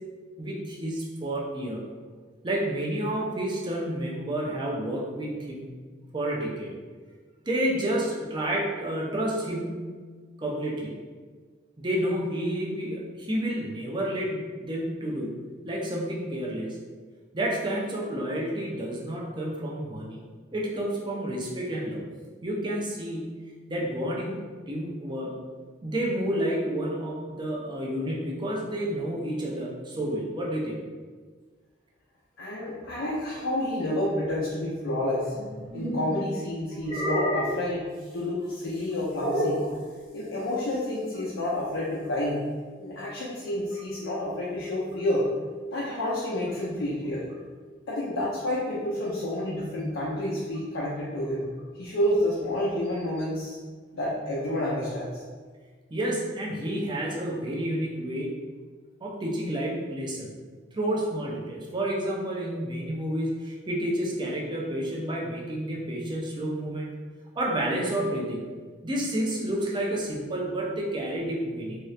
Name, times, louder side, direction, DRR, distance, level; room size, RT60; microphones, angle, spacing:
voice 1, 0.4-1.8 2.4-5.7 6.1-6.7 7.5-9.9 10.4-11.0 11.8-15.4 15.6-16.8 17.3-20.2 20.5-22.1 22.4-23.3 23.7-25.4 25.8-30.8 43.7-43.8 55.9-58.3 59.0-60.3 60.7-66.9 67.4-68.4 68.8-71.8, right 1 dB, 25° right, -3 dB, 0.5 m, -30 dB
voice 2, 32.4-35.4 35.7-39.7 40.1-42.4 42.8-45.3 45.7-47.3 47.9-51.5 51.8-53.6 53.9-55.2, left 1 dB, 90° left, -6 dB, 0.6 m, -29 dB
sound 1, 35.3-36.1 36.8-37.7 39.2-39.7, equal, 60° right, 1.0 m, -28 dB
2.9 x 2.4 x 3.1 m, 1.5 s
head